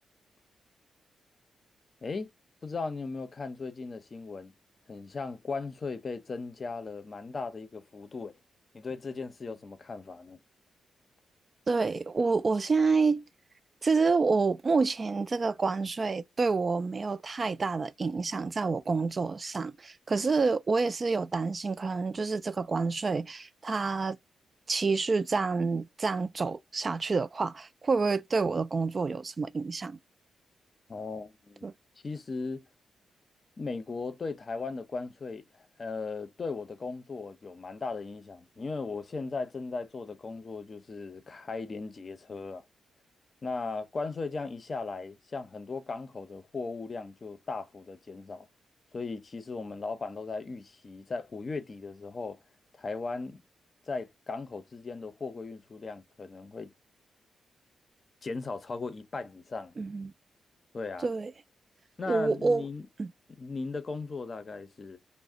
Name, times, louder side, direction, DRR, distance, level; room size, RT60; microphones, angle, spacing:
voice 1, 2.6-4.5 4.9-8.4 8.7-10.4 30.9-31.7 32.0-32.7 33.6-42.6 43.4-48.5 48.9-52.4 52.8-53.4 53.9-56.7 58.2-59.7 60.7-61.1 62.0-62.9 63.4-65.0, left 4 dB, 45° left, 0.6 m, -37 dB
voice 2, 11.7-13.3 13.8-24.2 24.7-30.0 31.6-31.7 59.8-60.1 61.0-61.3 62.1-62.6 63.0-63.1, right 4 dB, 45° right, 0.3 m, -28 dB
2.4 x 2.1 x 3.7 m
supercardioid pair, 55°, 0 cm